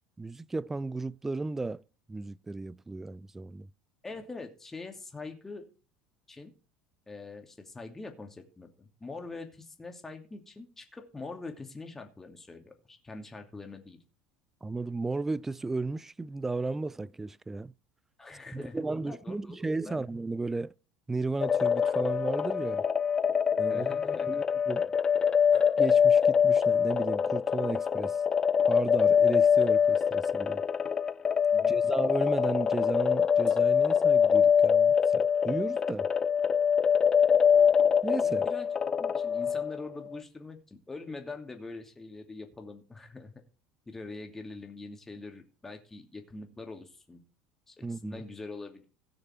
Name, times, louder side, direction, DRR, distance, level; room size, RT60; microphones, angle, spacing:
voice 1, 0.2-1.8 2.1-3.7 14.6-17.7 18.5-20.7 21.1-22.9 23.6-23.9 24.3-24.9 25.8-28.2 28.7-30.6 31.7-36.1 38.0-38.5 47.8-48.2, right 3 dB, 15° right, 0.4 m, -34 dB
voice 2, 4.0-5.7 6.3-6.5 7.1-14.0 18.2-20.0 23.7-24.4 31.5-31.8 38.2-43.3 43.9-47.2 47.7-48.9, left 3 dB, 15° left, 2.7 m, -44 dB
sound 1, 18.6-19.2 21.9-23.1 25.5-26.4 29.6-30.4 33.5-34.5, right 4 dB, 70° right, 4.0 m, -59 dB
sound 2, 21.4-39.8, left 7 dB, 30° left, 0.6 m, -24 dB
17.0 x 6.6 x 4.5 m
hypercardioid pair, 70°, 2 cm